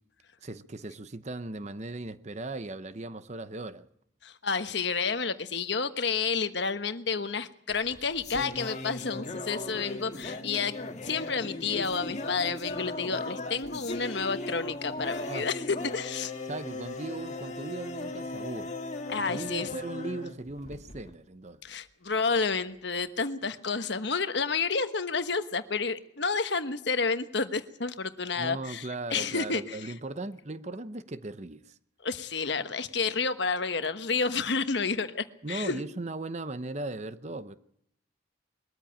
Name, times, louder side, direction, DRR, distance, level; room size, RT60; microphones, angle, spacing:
voice 1, 0.4-3.9 15.3-15.5 16.5-18.8 19.2-21.6 28.4-31.8 35.4-37.5, right 2 dB, 35° right, 0.8 m, -38 dB
voice 2, 4.2-10.7 11.0-15.6 15.9-16.3 19.1-19.7 21.6-29.9 32.0-35.8, left 5 dB, 60° left, 1.2 m, -30 dB
sound 1, 7.7-21.1, left 2 dB, 35° left, 1.9 m, -37 dB
22.0 x 14.0 x 8.8 m
head